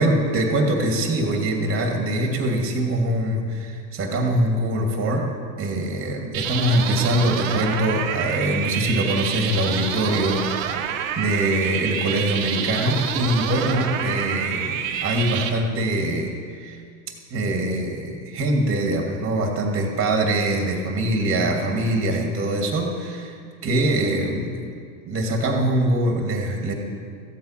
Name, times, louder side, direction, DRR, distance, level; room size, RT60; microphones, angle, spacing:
voice 1, 0.0-5.3 5.6-16.3 16.6-16.8 17.3-23.3 23.6-24.6 25.1-26.7, right 1 dB, 30° right, 2 dB, 2.5 m, -23 dB
sound 1, 6.3-15.5, right 8 dB, 70° right, 1.2 m, -28 dB
15.0 x 8.2 x 5.9 m, 2.2 s
supercardioid pair, 115°, 43 cm